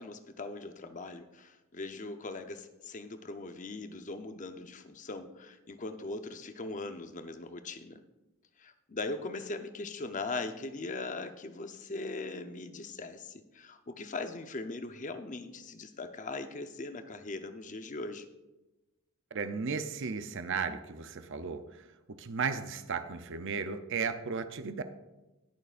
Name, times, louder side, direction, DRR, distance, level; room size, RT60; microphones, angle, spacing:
voice 1, 0.0-8.0 8.6-18.3, left 3 dB, 35° left, 8 dB, 0.7 m, -40 dB
voice 2, 19.3-24.8, right 5 dB, 60° right, 10 dB, 0.6 m, -35 dB
20.0 x 6.7 x 2.5 m, 1.1 s
head